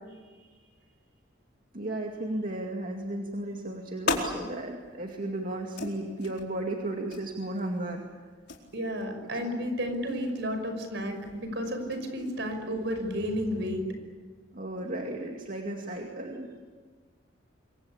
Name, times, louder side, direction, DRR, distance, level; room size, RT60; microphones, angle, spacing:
voice 1, 0.1-0.6 1.7-8.0 9.2-9.3 14.5-16.5, right 1 dB, 45° right, 1 dB, 2.3 m, -35 dB
sound 1, 3.3-13.8, left 3 dB, 60° left, 4.4 m, -40 dB
voice 2, 8.7-13.8, equal, 65° right, 6 dB, 5.7 m, -32 dB
26.5 x 23.5 x 8.8 m, 1.5 s
head